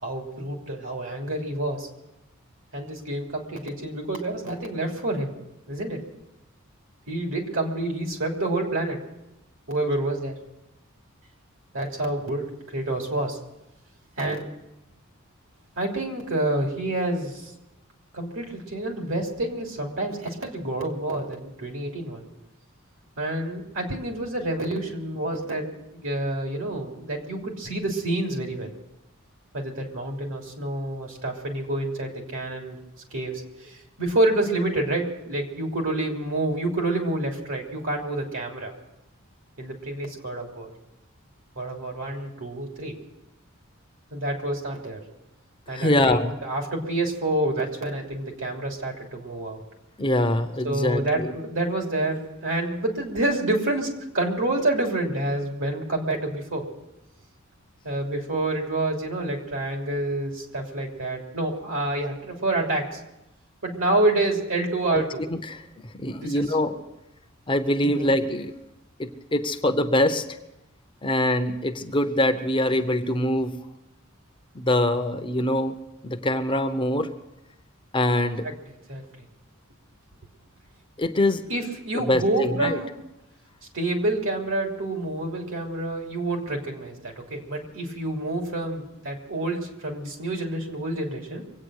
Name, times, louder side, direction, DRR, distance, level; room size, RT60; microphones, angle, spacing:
voice 1, 0.0-1.9 2.7-5.3 5.7-6.0 7.1-9.0 9.7-10.3 11.7-12.5 12.7-13.4 14.2-14.4 15.8-17.5 18.1-22.2 23.2-28.7 29.5-32.8 33.1-38.7 39.6-40.7 41.6-42.9 44.1-45.0 45.7-49.6 50.6-53.9 54.1-56.7 57.8-63.0 63.6-65.2 66.2-66.7 67.8-68.1 78.4-79.0 81.5-82.9 83.7-91.4, right 2 dB, 65° right, 1 dB, 3.1 m, -28 dB
voice 2, 45.7-46.3 50.0-51.3 64.9-65.0 65.3-66.7 67.5-68.5 69.0-70.2 71.0-73.6 74.5-75.7 76.0-77.1 77.9-78.5 81.0-81.4 81.9-82.8, left 1 dB, 25° left, 7 dB, 0.8 m, -24 dB
23.5 x 8.9 x 6.4 m, 0.92 s
head